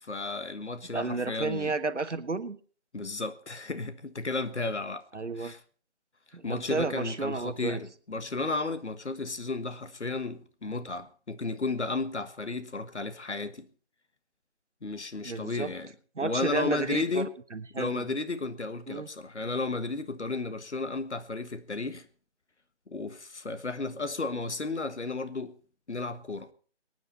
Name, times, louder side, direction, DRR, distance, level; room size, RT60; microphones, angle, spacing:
voice 1, 0.0-1.7 2.9-5.0 5.4-5.6 6.4-13.7 14.8-15.9 16.2-17.3 17.8-22.1 22.9-25.6 25.9-26.5, left 3 dB, 70° left, 1.5 m, -33 dB
voice 2, 0.9-2.6 5.1-5.5 6.3-7.8 15.2-15.7 16.1-18.1 18.9-19.1, right 4 dB, 80° right, 1.5 m, -32 dB
23.5 x 9.4 x 4.2 m
figure-of-eight pair, 165°, 35 cm